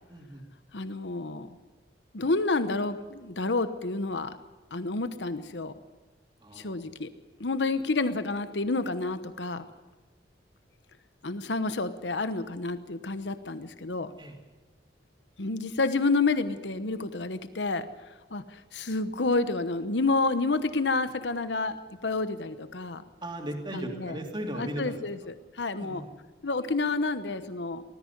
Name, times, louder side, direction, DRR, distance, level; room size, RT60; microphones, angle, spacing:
voice 1, 0.1-0.4 6.4-6.8 14.2-14.4 23.2-25.1 25.8-26.1, right 1 dB, 25° right, 2 dB, 3.0 m, -37 dB
voice 2, 0.7-1.5 2.1-4.4 4.7-5.7 6.5-7.1 7.4-9.7 11.2-14.1 15.4-17.9 18.3-21.8 22.0-23.0 23.7-24.2 24.6-26.0 26.4-27.8, left 3 dB, 80° left, 11 dB, 1.0 m, -29 dB
19.0 x 14.0 x 9.8 m, 1.2 s
head